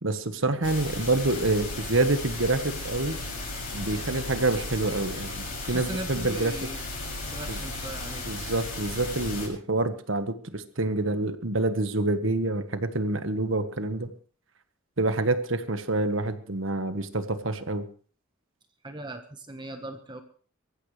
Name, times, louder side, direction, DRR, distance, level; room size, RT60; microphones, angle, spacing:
voice 1, 0.0-3.2 3.7-6.5 7.5-7.6 8.3-14.1 15.0-17.9, right 2 dB, 60° right, 9 dB, 1.5 m, -27 dB
sound 1, 0.6-9.5, left 2 dB, 40° left, 6.9 m, -35 dB
voice 2, 5.7-6.8 7.3-8.3 18.8-20.2, right 1 dB, 20° right, 6 dB, 1.4 m, -38 dB
23.5 x 14.5 x 3.3 m, 0.42 s
head